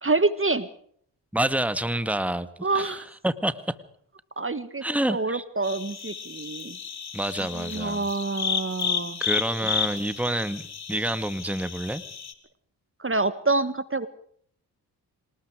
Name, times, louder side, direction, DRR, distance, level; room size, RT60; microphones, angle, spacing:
voice 1, 0.0-0.7 2.6-3.0 4.4-4.8 5.1-6.8 7.4-9.2 13.0-14.1, right 3 dB, 30° right, 13 dB, 1.7 m, -27 dB
voice 2, 1.3-2.5 2.7-3.0 3.2-3.8 4.8-5.4 7.1-8.0 9.2-10.6 10.9-12.0, right 1 dB, 5° right, 12 dB, 1.9 m, -27 dB
sound 1, 5.6-12.3, left 7 dB, 60° left, 2.8 m, -32 dB
26.5 x 19.5 x 5.0 m, 0.63 s
supercardioid pair, 50°, 44 cm